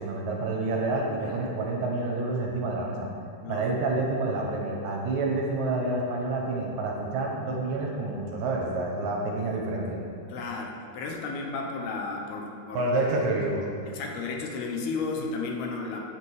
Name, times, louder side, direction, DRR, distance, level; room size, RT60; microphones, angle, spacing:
voice 1, 0.0-3.1 3.5-10.0 12.7-13.6, right 2 dB, 70° right, -1 dB, 2.5 m, -28 dB
voice 2, 10.3-12.9 13.9-16.0, left 4 dB, 80° left, 1 dB, 3.0 m, -33 dB
8.8 x 5.2 x 7.9 m, 2.4 s
omnidirectional pair, 4.5 m